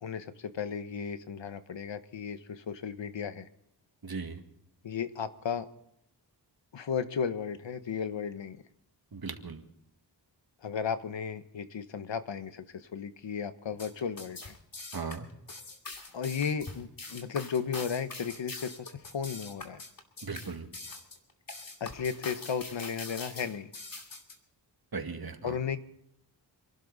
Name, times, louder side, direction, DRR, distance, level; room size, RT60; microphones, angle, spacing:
voice 1, 0.0-3.5 4.8-5.7 6.7-8.6 10.6-14.6 16.1-19.8 21.8-23.7 25.4-25.8, left 6 dB, 75° left, 11 dB, 1.2 m, -34 dB
voice 2, 4.0-4.4 9.1-9.6 14.9-15.3 20.2-20.7 24.9-25.5, right 4 dB, 55° right, 5 dB, 2.2 m, -37 dB
sound 1, 13.8-24.4, left 3 dB, 50° left, 2.6 m, -43 dB
27.0 x 12.0 x 4.1 m, 0.76 s
cardioid pair, 65°, 44 cm